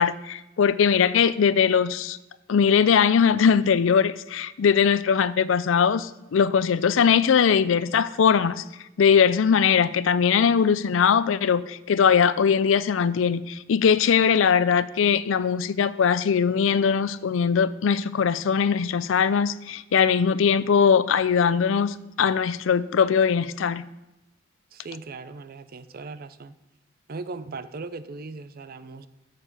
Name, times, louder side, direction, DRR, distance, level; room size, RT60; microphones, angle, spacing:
voice 1, 0.0-2.2 2.5-8.6 9.0-23.8, left 7 dB, 75° left, 17 dB, 0.4 m, -21 dB
voice 2, 24.7-26.6 27.1-29.1, right 3 dB, 50° right, 14 dB, 0.5 m, -38 dB
7.3 x 6.6 x 6.6 m, 0.98 s
head